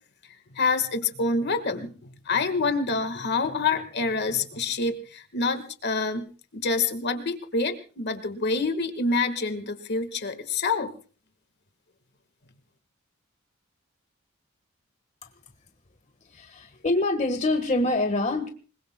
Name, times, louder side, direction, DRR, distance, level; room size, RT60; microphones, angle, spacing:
voice 1, 0.5-6.3 6.5-10.9, left 3 dB, 55° left, 9 dB, 1.6 m, -27 dB
voice 2, 16.2-18.5, left 2 dB, 35° left, 6 dB, 1.5 m, -25 dB
26.5 x 21.0 x 2.2 m, 0.38 s
head